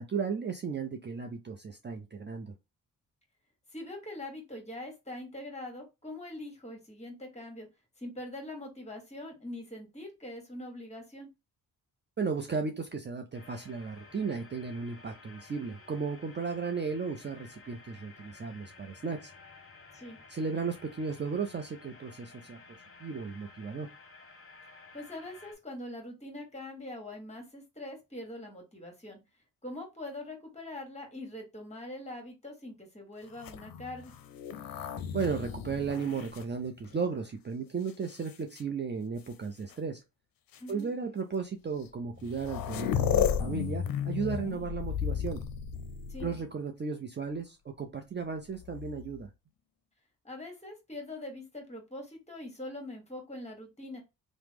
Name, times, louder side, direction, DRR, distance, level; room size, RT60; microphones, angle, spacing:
voice 1, 0.0-2.5 12.2-19.3 20.3-22.6 23.0-23.9 35.1-40.0 40.7-45.4 46.2-49.3, right 5 dB, 30° right, 4 dB, 0.5 m, -35 dB
voice 2, 3.7-7.7 8.0-11.3 19.9-20.2 24.9-29.2 29.6-34.1 40.6-40.9 46.1-46.3 50.2-54.0, left 1 dB, 20° left, 2 dB, 1.4 m, -43 dB
sound 1, 13.3-25.5, left 3 dB, 35° left, 0.9 m, -54 dB
sound 2, 33.3-37.2 37.9-38.6 39.7-39.8 40.5-40.7 41.9-42.0 42.1-46.6 48.5-49.2, left 8 dB, 70° left, 0.5 m, -34 dB
3.0 x 2.1 x 3.4 m, 0.24 s
cardioid pair, 65°, 36 cm